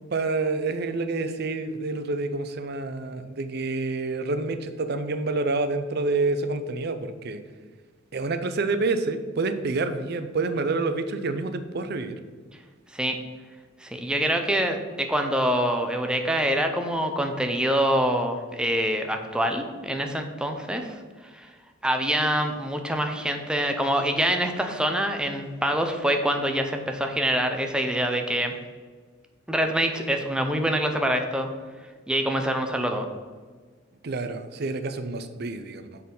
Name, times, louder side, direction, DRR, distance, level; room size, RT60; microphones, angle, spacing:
voice 1, 0.1-7.4 8.1-12.2 34.0-36.0, right 3 dB, 55° right, 9 dB, 0.6 m, -28 dB
voice 2, 13.8-21.0 21.3-21.5 21.8-28.5 29.5-31.5 32.1-33.1, equal, 5° right, 5 dB, 0.6 m, -25 dB
6.4 x 4.1 x 5.4 m, 1.5 s
head